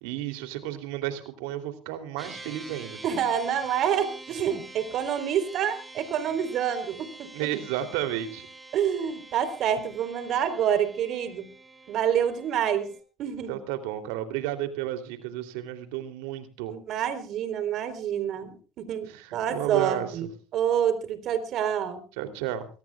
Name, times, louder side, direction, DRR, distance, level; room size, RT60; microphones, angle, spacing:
voice 1, 0.0-3.0 7.3-8.5 13.5-16.7 19.1-20.1 22.2-22.7, right 12 dB, 75° right, 9 dB, 3.2 m, -32 dB
sound 1, 2.2-13.0, right 3 dB, 15° right, 5.9 m, -46 dB
voice 2, 3.0-7.3 8.7-11.5 11.9-12.9 13.2-13.6 16.7-20.3 20.5-22.0, right 9 dB, 55° right, 11 dB, 3.9 m, -27 dB
24.5 x 18.0 x 2.4 m, 0.38 s
hypercardioid pair, 75°, 0 cm